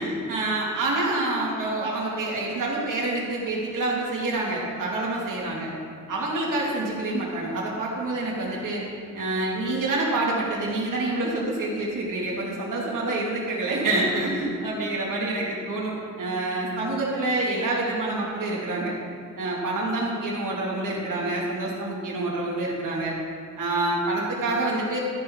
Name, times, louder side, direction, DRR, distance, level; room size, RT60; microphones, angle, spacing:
voice 1, 0.0-5.7 6.1-8.8 9.1-18.9 19.4-23.2 23.6-25.0, right 2 dB, 75° right, -4 dB, 2.7 m, -27 dB
13.5 x 6.9 x 4.7 m, 2.4 s
wide cardioid pair, 140°, 32 cm